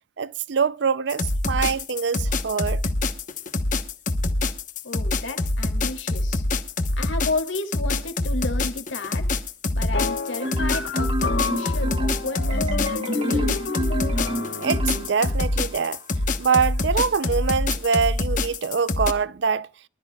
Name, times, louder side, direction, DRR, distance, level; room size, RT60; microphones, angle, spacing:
voice 1, 0.2-2.8 14.6-16.0 16.4-19.7, right 6 dB, 65° right, 0.5 m, -24 dB
sound 1, 1.1-19.1, left 2 dB, 40° left, 1.0 m, -25 dB
voice 2, 4.8-6.4 7.0-9.3 9.7-13.6, left 2 dB, 85° left, 2.6 m, -32 dB
sound 2, 9.9-15.1, left 3 dB, 65° left, 1.1 m, -31 dB
Marimba xylophone, 10.4-15.6, equal, 30° right, 2.2 m, -29 dB
24.0 x 13.0 x 2.3 m
head